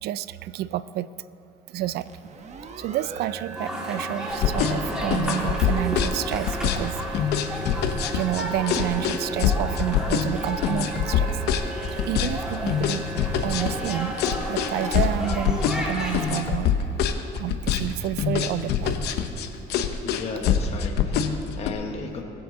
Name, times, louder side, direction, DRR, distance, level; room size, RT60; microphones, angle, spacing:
voice 1, 0.0-1.1 1.7-2.1 2.8-7.4 8.1-11.5 11.9-13.1 13.4-14.2 14.5-16.9 17.4-19.0, right 13 dB, 70° right, 17 dB, 0.4 m, -30 dB
sound 1, 1.9-16.6, right 4 dB, 40° right, 1.1 m, -39 dB
sound 2, 3.5-16.4, equal, 5° right, 2.4 m, -33 dB
sound 3, 4.3-21.7, left 8 dB, 80° left, 0.8 m, -24 dB
voice 2, 20.0-22.2, left 4 dB, 40° left, 2 dB, 1.0 m, -35 dB
20.5 x 7.8 x 3.9 m, 3.0 s
cardioid pair, 110°, 17 cm